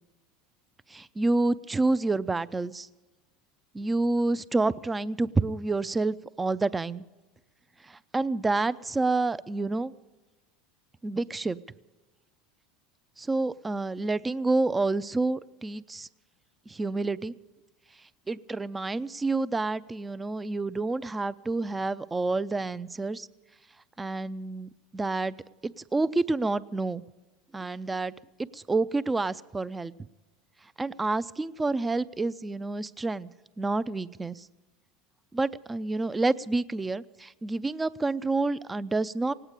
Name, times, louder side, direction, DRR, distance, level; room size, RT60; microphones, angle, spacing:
voice 1, 0.9-2.9 3.7-7.0 7.8-9.9 11.0-11.6 13.2-16.1 16.7-17.3 18.3-23.3 24.0-25.4 25.6-27.0 27.5-28.1 28.4-29.9 30.8-33.3 33.6-34.5 35.3-39.3, right 3 dB, 15° right, 16 dB, 0.5 m, -28 dB
18.0 x 8.8 x 8.2 m, 1.2 s
hypercardioid pair, 100°, 0 cm